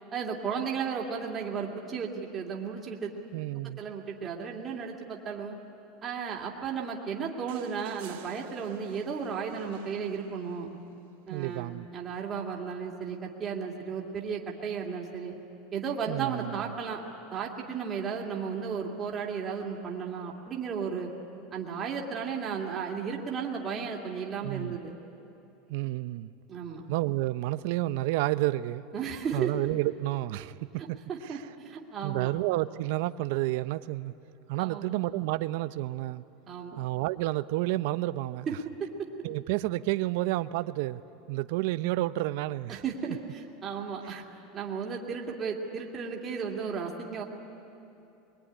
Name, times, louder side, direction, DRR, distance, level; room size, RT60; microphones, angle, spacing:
voice 1, 0.1-3.1 3.6-5.6 6.0-10.7 11.3-15.3 15.7-17.0 17.3-21.1 21.5-24.9 26.5-26.8 28.9-29.5 31.1-32.3 34.6-34.9 36.5-36.8 38.8-38.9 42.7-44.2 44.5-47.2, right 6 dB, 20° right, -1 dB, 2.3 m, -34 dB
voice 2, 3.3-3.8 11.3-11.9 16.1-16.6 24.4-24.8 25.7-26.3 26.9-28.8 29.3-31.0 31.2-31.4 32.0-34.1 34.5-36.2 36.8-38.5 39.2-41.0 41.3-42.8 44.0-44.1, right 17 dB, 60° right, 13 dB, 0.6 m, -30 dB
sound 1, 7.5-10.8 12.3-12.4, right 10 dB, 80° right, 2.1 m, -51 dB
23.0 x 22.0 x 9.9 m, 2.9 s
supercardioid pair, 160°, 0 cm